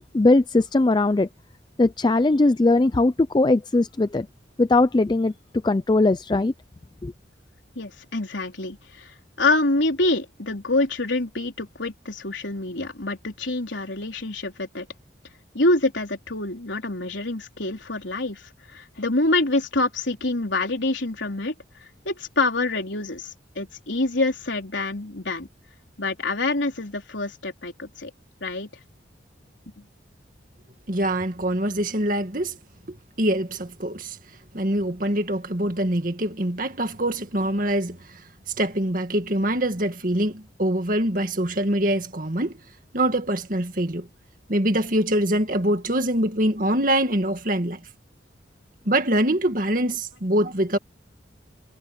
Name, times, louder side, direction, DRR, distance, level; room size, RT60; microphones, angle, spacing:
voice 1, 0.1-1.3 1.8-4.3 4.6-5.3 5.6-6.5 7.0-7.1, left 2 dB, 25° left, 0.4 m, -19 dB
voice 2, 7.8-14.9 15.5-21.5 21.8-25.5 26.0-28.1 28.4-28.7 29.8-29.9, left 2 dB, 80° left, 3.9 m, -26 dB
voice 3, 30.9-32.6 33.2-34.2 34.5-38.2 38.6-42.5 42.9-44.1 44.5-47.8 48.9-50.8, right 1 dB, 45° right, 2.1 m, -24 dB
head